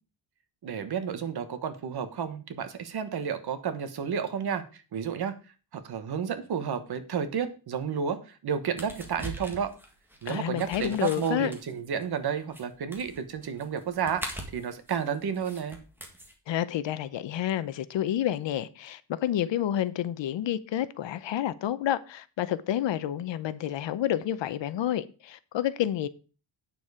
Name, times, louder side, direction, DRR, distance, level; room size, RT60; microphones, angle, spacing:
voice 1, 0.6-5.3 5.7-9.7 10.2-15.8, right 7 dB, 55° right, 1.3 m, -31 dB
sound 1, 8.8-16.3, right 1 dB, 5° right, 1.9 m, -42 dB
voice 2, 10.3-11.5 16.5-26.1, left 11 dB, 70° left, 0.8 m, -29 dB
9.1 x 6.9 x 4.9 m
wide cardioid pair, 175°, 46 cm